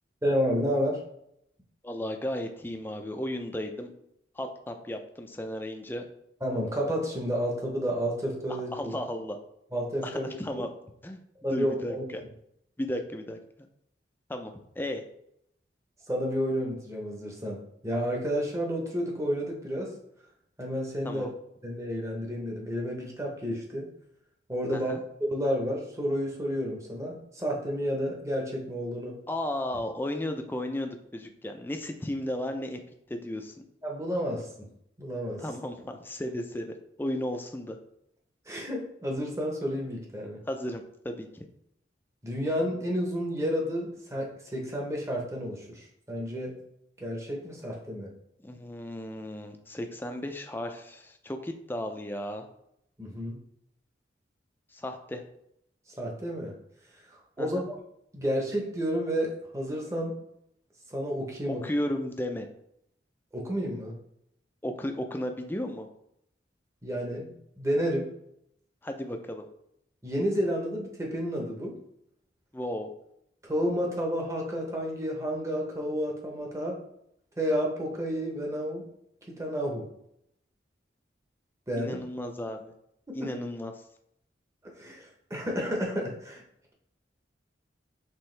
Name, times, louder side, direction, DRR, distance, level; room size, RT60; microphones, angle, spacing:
voice 1, 0.2-1.0 6.4-8.9 9.7-10.2 10.5-10.6 11.4-12.0 16.1-20.0 20.6-21.3 21.6-23.9 24.5-24.9 25.2-29.2 33.8-34.7 35.0-35.4 38.5-40.4 42.2-46.6 47.0-48.1 53.0-53.4 55.9-56.5 57.1-57.6 58.1-60.2 60.9-61.6 63.3-64.0 66.8-68.1 70.0-71.8 73.4-76.8 77.4-78.9 79.3-79.9 81.7-82.0 83.1-83.3 84.6-86.4, equal, 15° right, 0 dB, 0.8 m, -31 dB
voice 2, 1.8-3.9 4.4-6.1 8.7-9.4 10.0-10.7 11.0-11.2 11.5-11.9 12.8-13.4 14.3-15.0 21.0-21.3 24.7-25.0 29.3-32.8 33.1-33.5 35.4-37.8 40.5-41.4 48.4-52.5 54.7-55.2 57.4-57.7 61.5-62.5 64.6-65.9 68.8-69.5 72.5-72.9 81.8-82.7 83.1-83.7, left 1 dB, 10° left, 5 dB, 0.4 m, -34 dB
4.5 x 3.4 x 3.2 m, 0.75 s
head